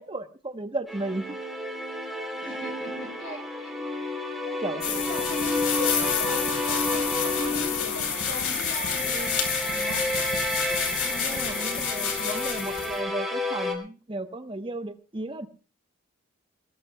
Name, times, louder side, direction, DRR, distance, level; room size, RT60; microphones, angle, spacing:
voice 1, 0.0-1.4 2.5-2.6 3.2-3.4 4.6-5.0 11.2-15.5, right 2 dB, 25° right, 9 dB, 0.9 m, -35 dB
sound 1, 0.9-13.7, left 1 dB, ahead, 3.2 m, -31 dB
voice 2, 2.4-3.7 4.4-9.3 9.7-10.0 11.0-11.8 12.2-12.4, left 1 dB, 50° left, 0 dB, 4.0 m, -40 dB
sound 2, 4.8-13.0, left 8 dB, 85° left, 3.9 m, -29 dB
21.5 x 19.0 x 2.2 m, 0.37 s
head